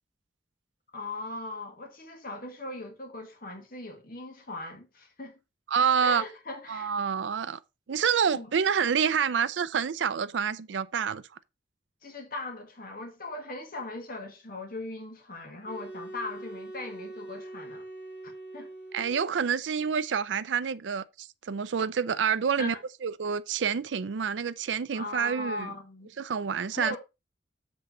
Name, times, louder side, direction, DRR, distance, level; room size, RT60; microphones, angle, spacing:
voice 1, 0.9-5.3 6.0-7.0 8.3-8.5 12.0-17.8 18.2-18.7 22.6-22.8 24.9-26.1 26.7-27.0, left 2 dB, 55° left, 1.9 m, -39 dB
voice 2, 5.7-6.2 6.7-7.6 7.9-11.2 18.9-22.7 23.0-25.7 26.2-26.9, right 7 dB, 90° right, 0.5 m, -28 dB
sound 1, 15.6-19.5, right 2 dB, 75° left, 2.1 m, -43 dB
7.8 x 3.7 x 5.7 m
head